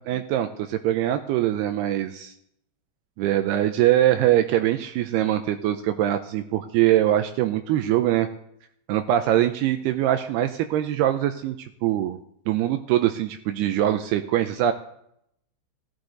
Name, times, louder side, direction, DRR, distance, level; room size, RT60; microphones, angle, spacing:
voice 1, 0.0-2.3 3.2-8.3 8.9-12.2 12.5-14.7, right 12 dB, 85° right, 8 dB, 2.4 m, -23 dB
16.5 x 14.5 x 4.0 m, 0.73 s
omnidirectional pair, 5.3 m